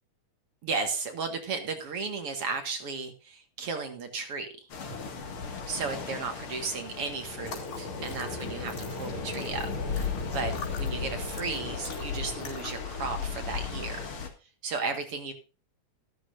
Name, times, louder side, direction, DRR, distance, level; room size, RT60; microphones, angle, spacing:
voice 1, 0.6-4.7 5.7-14.1 14.6-15.3, right 4 dB, 50° right, 6 dB, 2.3 m, -35 dB
sound 1, 4.7-14.3, left 5 dB, 45° left, 2.4 m, -35 dB
sound 2, 7.4-12.9, left 5 dB, 85° left, 4.8 m, -46 dB
13.5 x 13.0 x 2.6 m, 0.35 s
omnidirectional pair, 3.8 m